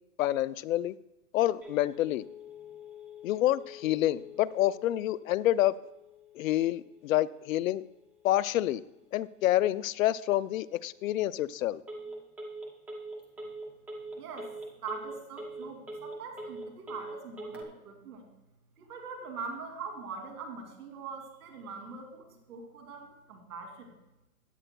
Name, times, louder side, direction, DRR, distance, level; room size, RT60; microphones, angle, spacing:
voice 1, 0.2-1.0 1.3-2.2 3.2-5.8 6.3-7.8 8.2-8.8 9.1-11.8, left 14 dB, 65° left, 18 dB, 0.5 m, -28 dB
Telephone, 1.6-17.6, equal, 5° right, 0.4 m, -46 dB
voice 2, 14.1-18.3 18.8-23.9, right 4 dB, 75° right, 3 dB, 2.7 m, -42 dB
15.5 x 10.0 x 2.2 m, 0.94 s
hypercardioid pair, 140°, 45 cm